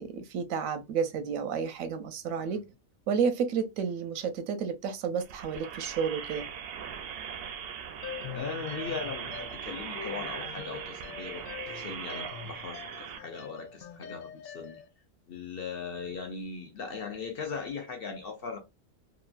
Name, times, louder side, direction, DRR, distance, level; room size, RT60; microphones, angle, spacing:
voice 1, 0.0-2.6 3.1-6.5, right 6 dB, 90° right, 1.0 m, -31 dB
sound 1, 5.2-13.2, right 7 dB, 65° right, 0.6 m, -40 dB
sound 2, 8.0-14.9, left 8 dB, 85° left, 1.0 m, -44 dB
voice 2, 8.3-11.5 11.7-14.8 15.3-18.6, left 5 dB, 60° left, 0.6 m, -39 dB
2.9 x 2.4 x 2.4 m
omnidirectional pair, 1.4 m